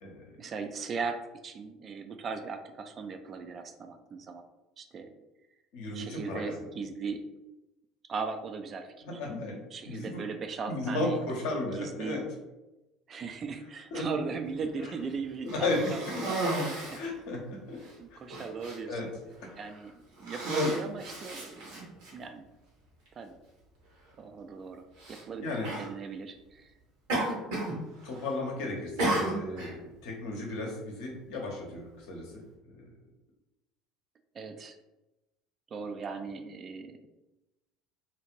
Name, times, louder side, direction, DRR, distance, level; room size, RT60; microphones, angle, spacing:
voice 1, 0.4-4.4 4.8-5.1 5.9-7.3 8.1-9.2 9.7-11.2 11.7-12.2 13.1-17.0 17.8-19.0 19.6-19.9 20.2-21.9 22.1-22.5 23.2-23.4 24.2-24.8 25.1-26.7 27.5-27.8 34.3-34.8 35.7-37.0, right 5 dB, 40° right, 6 dB, 0.3 m, -38 dB
voice 2, 5.7-6.4 9.0-10.2 10.7-12.2 13.9-14.0 14.8-14.9 15.5-16.3 16.9-17.8 18.9-19.1 25.4-25.7 28.0-32.4 32.7-32.9, left 2 dB, 65° left, 0 dB, 0.8 m, -34 dB
Cough, 15.4-17.1 17.8-17.9 18.3-18.8 19.5-19.8 20.2-22.1 23.1-23.2 25.0-25.2 25.6-25.9 27.1-27.8 28.0-28.5 29.0-29.7, right 1 dB, 65° right, 1.0 m, -32 dB
2.8 x 2.4 x 3.0 m, 1.0 s
figure-of-eight pair, 65°, 0 cm